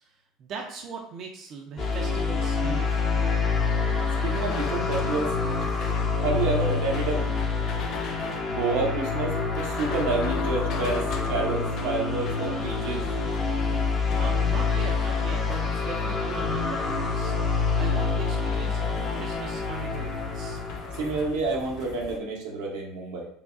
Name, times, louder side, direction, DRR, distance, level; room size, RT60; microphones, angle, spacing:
voice 1, 0.0-3.3 14.1-20.6, right 4 dB, 50° right, 0 dB, 0.5 m, -40 dB
sound 1, 1.8-21.3, left 4 dB, 45° left, 0.9 m, -27 dB
sound 2, 3.9-22.2, left 6 dB, 60° left, 0.5 m, -41 dB
voice 2, 4.2-5.3 6.2-7.3 8.4-13.1 20.9-23.3, right 3 dB, 90° right, -2 dB, 1.0 m, -29 dB
4.8 x 2.2 x 2.5 m, 0.67 s
supercardioid pair, 110°, 0 cm